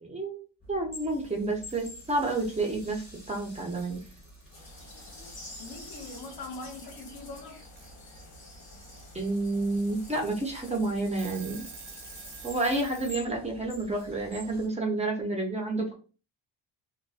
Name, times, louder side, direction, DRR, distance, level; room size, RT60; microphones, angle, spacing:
voice 1, 0.0-4.0 9.1-11.7 12.4-16.0, right 2 dB, 15° right, 0.5 m, -30 dB
sound 1, 0.6-14.7, equal, 20° left, 1.1 m, -49 dB
Alarm / Clock, 1.5-2.3 3.4-3.5 3.8-4.6 5.7-6.3 7.8-7.9 8.6-9.0 9.5-9.6 10.0-10.1 10.7-10.8 11.0-13.2, right 8 dB, 70° right, 0.7 m, -48 dB
sound 2, 4.5-12.8, left 2 dB, 90° left, 1.2 m, -49 dB
voice 2, 5.6-7.6, left 2 dB, 50° left, 0.7 m, -42 dB
2.5 x 2.2 x 2.3 m
cardioid pair, 115°, 48 cm